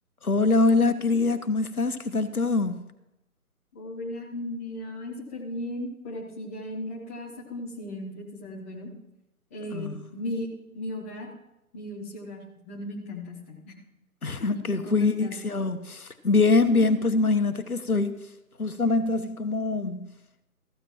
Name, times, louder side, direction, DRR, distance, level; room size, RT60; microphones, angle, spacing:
voice 1, 0.2-2.8 9.7-10.0 14.2-18.3 18.6-20.1, left 3 dB, 80° left, 1.2 m, -24 dB
voice 2, 3.7-8.9 9.5-10.5 10.7-11.3 11.7-13.7 14.5-15.3, left 1 dB, 10° left, 0.8 m, -36 dB
14.5 x 14.0 x 3.0 m
figure-of-eight pair, 145°, 44 cm